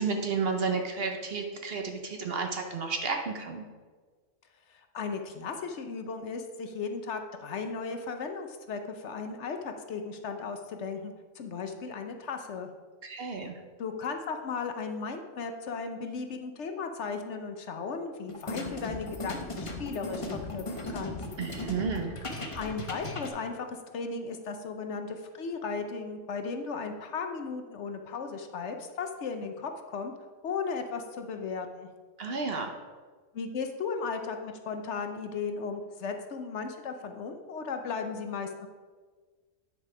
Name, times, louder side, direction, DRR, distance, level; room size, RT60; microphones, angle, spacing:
voice 1, 0.0-3.6 13.0-13.5 21.4-22.1 32.2-32.7, right 4 dB, 50° right, 4 dB, 0.9 m, -32 dB
voice 2, 4.7-12.7 13.8-21.2 22.5-30.1 30.4-31.9 33.3-38.7, left 5 dB, 60° left, 6 dB, 1.0 m, -36 dB
sound 1, 18.3-23.3, left 2 dB, 30° left, 0.8 m, -37 dB
9.5 x 5.3 x 4.8 m, 1.5 s
omnidirectional pair, 1.4 m